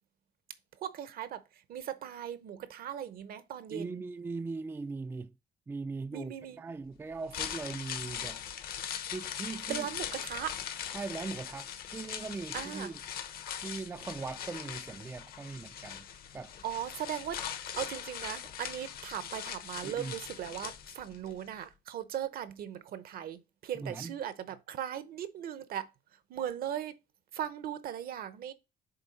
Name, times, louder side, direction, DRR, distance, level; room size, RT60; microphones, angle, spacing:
voice 1, 0.8-1.4 1.7-4.0 6.1-6.6 9.7-10.5 12.5-12.9 16.6-17.4 17.8-25.9 26.3-26.9 27.3-28.5, right 10 dB, 60° right, 0.8 m, -38 dB
voice 2, 3.7-5.3 5.7-8.4 9.1-9.9 10.9-13.0 13.6-16.1 16.3-16.6 19.8-20.2 23.7-24.2, right 4 dB, 15° right, 0.3 m, -40 dB
sound 1, 7.1-21.3 21.6-21.7, left 9 dB, 65° left, 1.0 m, -41 dB
6.8 x 4.2 x 4.1 m
cardioid pair, 110°, 17 cm